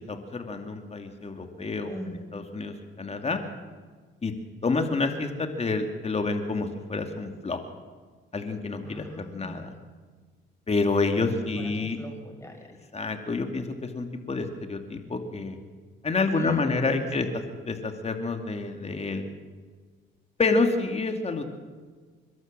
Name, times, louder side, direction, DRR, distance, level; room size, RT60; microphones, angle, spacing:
voice 1, 0.1-1.9 2.3-3.4 4.2-4.3 4.6-7.6 8.3-9.1 9.3-9.7 10.7-12.0 12.9-15.6 16.0-17.3 17.7-19.2 20.4-21.4, left 3 dB, 30° left, 5 dB, 2.4 m, -28 dB
voice 2, 1.9-2.3 8.8-9.8 11.2-12.9 16.3-17.3, left 1 dB, 15° left, 2 dB, 6.3 m, -41 dB
30.0 x 12.5 x 7.6 m, 1.5 s
cardioid pair, 90°, 20 cm